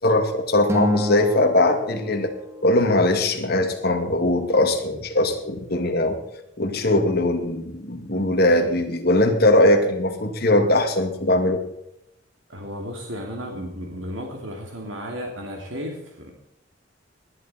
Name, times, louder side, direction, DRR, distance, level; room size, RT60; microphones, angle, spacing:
voice 1, 0.0-2.3 2.6-6.2 6.6-11.6, left 1 dB, 55° left, 4 dB, 2.4 m, -20 dB
Acoustic guitar, 0.7-3.1, left 1 dB, 15° right, 1.9 m, -28 dB
voice 2, 12.5-16.3, equal, 85° right, 1 dB, 2.9 m, -34 dB
19.5 x 11.5 x 4.4 m, 0.82 s
head